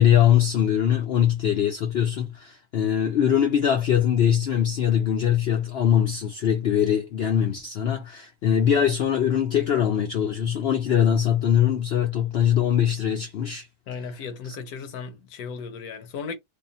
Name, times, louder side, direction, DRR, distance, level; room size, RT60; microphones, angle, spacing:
voice 1, 0.0-13.7, left 9 dB, 65° left, 0.6 m, -22 dB
voice 2, 13.9-16.4, left 5 dB, 85° left, 1.3 m, -35 dB
3.6 x 2.2 x 3.9 m
omnidirectional pair, 1.5 m